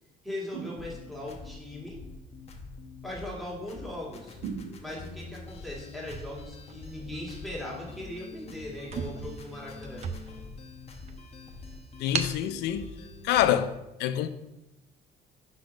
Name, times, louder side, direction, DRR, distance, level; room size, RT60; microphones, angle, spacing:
voice 1, 0.2-2.0 3.0-4.4 4.8-10.1, left 1 dB, ahead, 1.8 m, -39 dB
sound 1, 0.5-1.4 4.4-5.3, right 7 dB, 85° right, 0.8 m, -40 dB
sound 2, 0.8-13.6, left 3 dB, 40° left, 1.0 m, -45 dB
sound 3, 6.0-7.3 8.0-8.2 8.5-8.6 8.8-10.6 11.1-11.2 12.1-12.4, right 6 dB, 40° right, 0.6 m, -36 dB
voice 2, 12.0-12.9 13.2-13.7 14.0-14.3, left 11 dB, 80° left, 0.5 m, -26 dB
5.8 x 4.0 x 5.1 m
cardioid pair, 110°, 17 cm